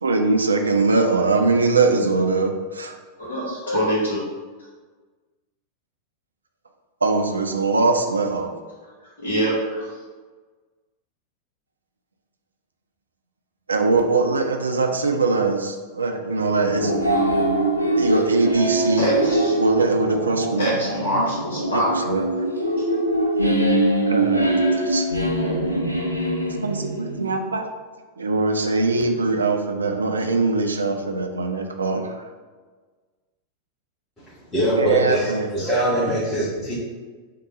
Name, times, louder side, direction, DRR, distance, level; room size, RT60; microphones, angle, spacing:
voice 1, 0.0-2.9 7.0-8.5 13.7-16.9 18.0-19.1 19.6-20.7 21.7-22.2 24.1-24.5 24.8-25.1 26.6-27.7 28.2-32.1 34.8-35.5, right 3 dB, 75° right, 5 dB, 0.4 m, -21 dB
voice 2, 3.2-4.2 9.2-9.9 19.0-19.6 20.6-22.0 22.8-22.9, right 1 dB, 65° left, -8 dB, 1.0 m, -24 dB
sound 1, 16.7-27.3, right 1 dB, 90° left, 0.4 m, -22 dB
voice 3, 34.5-36.7, right 1 dB, 15° left, -12 dB, 1.4 m, -22 dB
3.7 x 2.2 x 3.8 m, 1.4 s
figure-of-eight pair, 90°, 0 cm